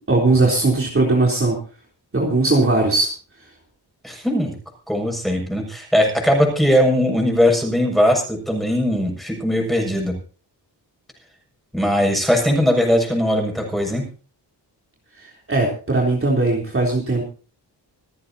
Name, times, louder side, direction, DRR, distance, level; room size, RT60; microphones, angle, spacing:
voice 1, 0.1-1.6 2.1-3.1 15.5-17.2, right 2 dB, 30° right, -1 dB, 3.7 m, -18 dB
voice 2, 4.0-4.5 4.9-10.2 11.7-14.0, equal, ahead, 1 dB, 6.8 m, -19 dB
27.5 x 9.8 x 2.9 m, 0.37 s
wide cardioid pair, 100°, 42 cm